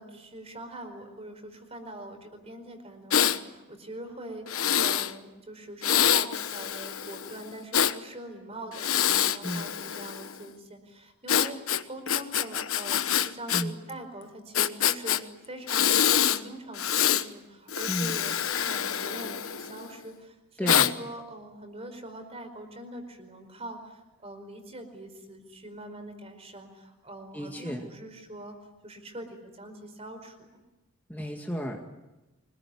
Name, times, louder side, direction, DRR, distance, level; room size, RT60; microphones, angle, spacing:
voice 1, 0.0-28.5 28.8-30.6, right 1 dB, 30° right, 6 dB, 4.8 m, -43 dB
Breathing, 3.1-3.4 4.5-5.1 5.8-7.9 8.7-10.3 11.3-13.6 13.9-14.0 14.5-15.2 15.7-16.4 16.7-17.2 17.7-19.9 20.7-20.9, left 9 dB, 70° left, 1.2 m, -25 dB
voice 2, 27.3-27.9 31.1-31.9, equal, 10° left, 1 dB, 2.0 m, -33 dB
25.5 x 21.5 x 9.9 m, 1.1 s
head